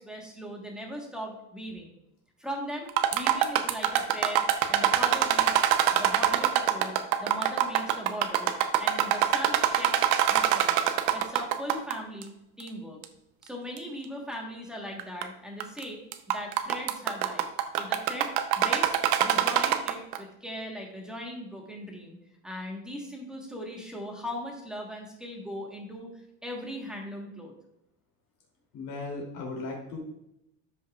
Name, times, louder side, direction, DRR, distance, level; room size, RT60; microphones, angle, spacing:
voice 1, 0.0-1.9 2.4-5.6 5.9-6.9 7.2-10.7 11.1-12.3 12.6-13.0 13.4-16.0 16.3-17.5 17.8-19.0 19.2-22.2 22.4-26.1 26.4-27.5, equal, ahead, -1 dB, 1.3 m, -39 dB
sound 1, 2.9-11.9 12.2-12.3 13.0-13.1 13.8-13.9 15.0-15.2 15.6-15.8 16.1-20.2, right 11 dB, 60° right, 0.8 m, -24 dB
voice 2, 28.7-30.0, left 3 dB, 55° left, -1 dB, 2.9 m, -36 dB
13.0 x 5.5 x 2.4 m, 0.83 s
cardioid pair, 170°, 37 cm